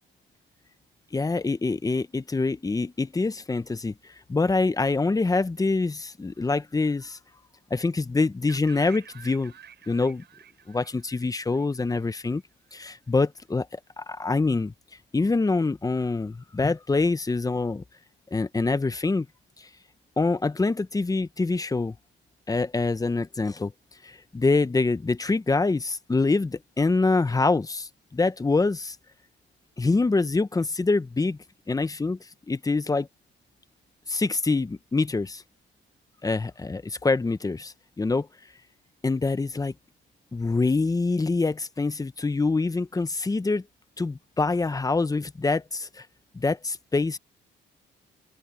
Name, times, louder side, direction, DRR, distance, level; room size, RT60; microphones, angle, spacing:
voice 1, 1.1-7.2 7.7-9.5 9.9-10.2 10.7-12.4 12.7-14.7 15.1-17.8 18.3-19.3 20.2-21.9 22.5-23.7 24.0-29.0 29.8-31.4 31.7-32.2 32.5-33.1 34.1-35.4 36.2-38.3 39.0-39.7 40.3-43.6 44.0-46.1 46.3-47.2, left 3 dB, 20° left, 0.9 m, -25 dB
sound 1, 8.5-12.4, right 8 dB, 60° right, 7.0 m, -49 dB
open air
cardioid pair, 90°, 20 cm